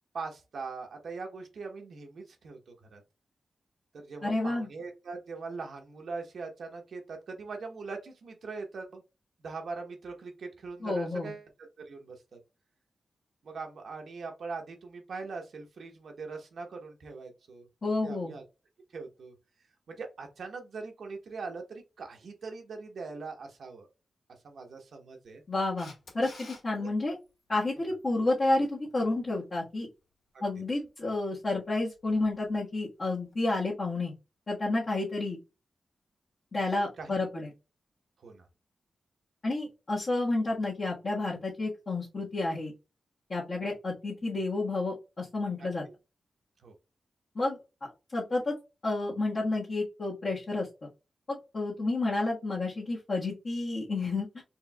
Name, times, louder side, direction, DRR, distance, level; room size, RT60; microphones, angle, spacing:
voice 1, 0.1-3.0 3.9-9.0 9.4-11.5 11.8-12.4 13.4-17.7 18.0-18.4 18.9-19.3 19.9-23.9 24.4-25.4 26.7-26.9 37.0-37.4 38.2-38.5 45.6-45.7 46.6-46.7, right 4 dB, 70° right, 3 dB, 1.0 m, -41 dB
voice 2, 4.2-4.7 10.8-11.3 17.8-18.3 25.5-27.2 27.5-29.9 30.4-34.1 34.5-35.4 36.5-37.5 39.4-42.7 43.3-45.9 47.3-48.5 48.8-50.9 51.3-54.4, left 2 dB, 45° left, -7 dB, 1.5 m, -30 dB
Camera, 25.8-26.6 33.3-33.4, left 2 dB, 75° left, 2.1 m, -47 dB
4.5 x 3.2 x 2.3 m, 0.28 s
wide cardioid pair, 130°, 0 cm